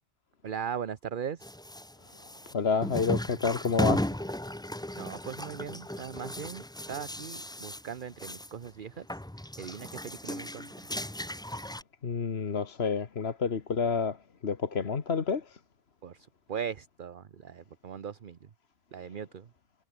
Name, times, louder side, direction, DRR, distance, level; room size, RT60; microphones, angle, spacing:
voice 1, 0.4-1.5 5.0-9.1 9.6-10.7 16.0-18.4 18.9-19.5, right 8 dB, 50° right, 1.0 m, -39 dB
sound 1, 1.4-8.7 9.0-11.8, left 1 dB, 5° left, 0.5 m, -36 dB
voice 2, 2.5-4.1 12.0-14.2 14.4-15.4, left 5 dB, 60° left, 1.6 m, -29 dB
omnidirectional pair, 1.2 m